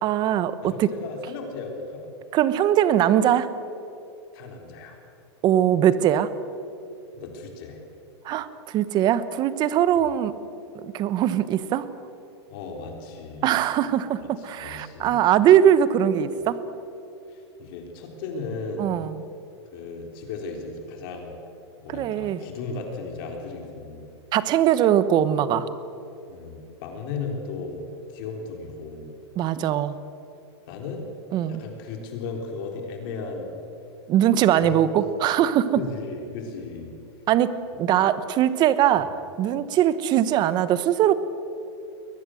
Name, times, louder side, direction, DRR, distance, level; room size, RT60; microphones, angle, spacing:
voice 1, 0.0-1.0 2.3-3.5 5.4-6.3 8.2-10.4 10.8-11.9 13.4-16.6 18.8-19.2 21.9-22.4 24.3-25.7 29.4-30.0 31.3-31.6 34.1-35.8 37.3-41.1, right 10 dB, 30° right, 14 dB, 1.1 m, -21 dB
voice 2, 0.6-2.1 4.3-5.0 7.1-7.8 12.5-13.5 14.2-15.2 17.3-19.0 19.7-21.3 21.8-24.1 26.3-27.8 28.1-29.1 30.7-31.1 31.4-33.5 34.6-34.8 35.7-36.9 37.9-38.1, left 4 dB, 50° left, 3 dB, 3.9 m, -36 dB
22.5 x 19.5 x 7.9 m, 2.6 s
supercardioid pair, 150°, 15 cm